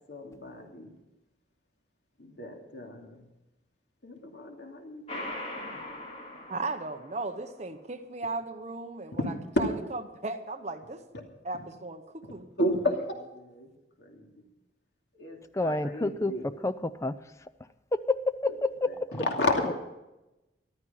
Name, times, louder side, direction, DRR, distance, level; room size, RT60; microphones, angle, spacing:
voice 1, 0.1-0.9 2.2-3.2 4.0-5.2 5.6-5.8 9.1-9.3 9.5-9.6 12.2-12.3 12.6-13.7 14.0-14.3 15.2-16.5 18.5-18.6 18.9-19.7, left 1 dB, 75° left, 1 dB, 2.6 m, -32 dB
sound 1, 5.1-7.5, left 1 dB, 35° left, 3.0 m, -40 dB
voice 2, 6.5-9.3 9.6-11.0 11.4-12.5, right 3 dB, 40° right, 8 dB, 0.9 m, -36 dB
voice 3, 15.5-16.3 16.6-17.2 17.9-18.9, left 2 dB, 15° left, 13 dB, 0.5 m, -28 dB
14.0 x 12.5 x 5.6 m, 0.98 s
head